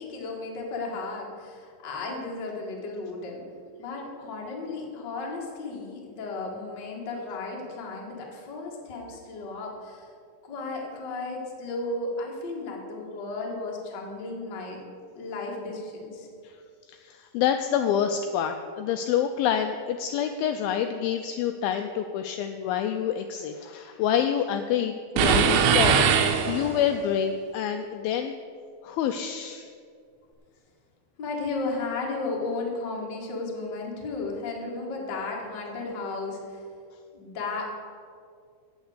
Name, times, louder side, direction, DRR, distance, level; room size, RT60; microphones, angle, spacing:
voice 1, 0.0-3.4 3.8-10.1 10.4-14.8 15.1-16.3 31.2-36.6 37.1-37.7, left 3 dB, 50° left, -1 dB, 1.3 m, -34 dB
voice 2, 16.9-28.4 28.8-29.7, left 9 dB, 90° left, 6 dB, 2.1 m, -27 dB
sound 1, 25.2-27.0, right 7 dB, 80° right, 2.3 m, -21 dB
8.4 x 7.9 x 8.0 m, 2.2 s
omnidirectional pair, 4.7 m